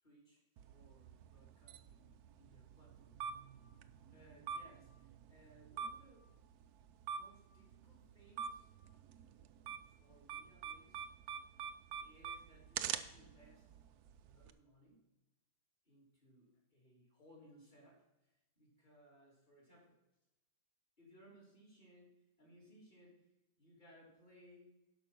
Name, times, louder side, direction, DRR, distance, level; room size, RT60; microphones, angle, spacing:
voice 1, 0.0-3.1 4.0-6.3 7.1-8.7 9.2-9.5 9.8-11.1 12.0-13.8 14.2-15.0 15.8-20.0 21.0-22.1 22.4-23.3 23.6-24.8, equal, 25° left, -4 dB, 3.4 m, -64 dB
sound 1, 0.6-14.5, right 7 dB, 70° right, 1.0 m, -47 dB
12.0 x 5.3 x 6.0 m, 0.96 s
omnidirectional pair, 1.8 m